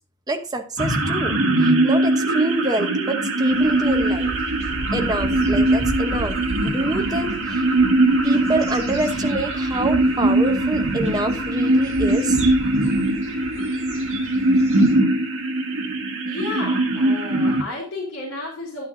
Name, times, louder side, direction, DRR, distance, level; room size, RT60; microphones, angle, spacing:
voice 1, 0.3-4.3 4.9-6.4 6.6-7.7 8.2-12.4, right 2 dB, 15° right, 5 dB, 0.9 m, -26 dB
sound 1, 0.8-17.6, right 1 dB, 60° right, 2.0 m, -21 dB
sound 2, 3.5-14.9, right 2 dB, 30° right, 4.6 m, -35 dB
voice 2, 16.2-18.9, left 3 dB, 55° left, -6 dB, 3.4 m, -32 dB
11.0 x 9.7 x 2.7 m, 0.38 s
head